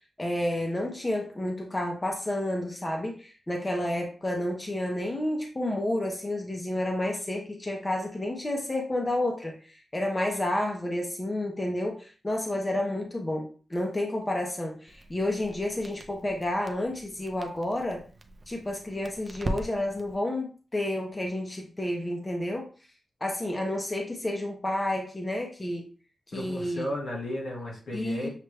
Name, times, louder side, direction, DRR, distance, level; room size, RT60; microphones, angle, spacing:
voice 1, 0.2-18.0 18.5-22.7 23.2-25.9 26.3-26.9 27.9-28.3, left 1 dB, 15° left, 1 dB, 0.6 m, -30 dB
Crackle, 14.9-20.2, right 2 dB, 30° right, 0.4 m, -40 dB
voice 2, 26.3-28.3, left 1 dB, 75° left, -2 dB, 1.7 m, -34 dB
6.4 x 2.2 x 3.3 m, 0.38 s
wide cardioid pair, 180°, 0 cm